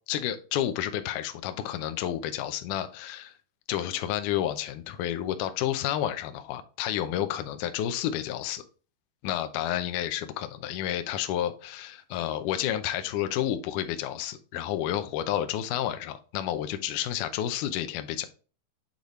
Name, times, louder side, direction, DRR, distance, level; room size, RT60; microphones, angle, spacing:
voice 1, 0.1-3.4 3.7-8.6 9.2-18.3, left 11 dB, 80° left, 9 dB, 1.8 m, -30 dB
8.4 x 4.0 x 3.1 m, 0.37 s
omnidirectional pair, 4.3 m